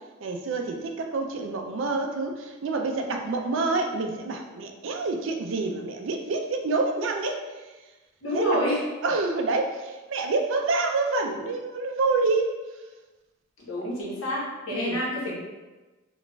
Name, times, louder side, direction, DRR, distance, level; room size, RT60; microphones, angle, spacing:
voice 1, 0.2-7.4 8.3-8.6 9.0-12.5 13.8-13.9 14.7-15.0, right 3 dB, 65° right, 4 dB, 0.4 m, -27 dB
voice 2, 8.2-8.8 13.6-15.4, left 1 dB, 75° left, -5 dB, 1.0 m, -28 dB
3.8 x 2.4 x 2.3 m, 1.2 s
head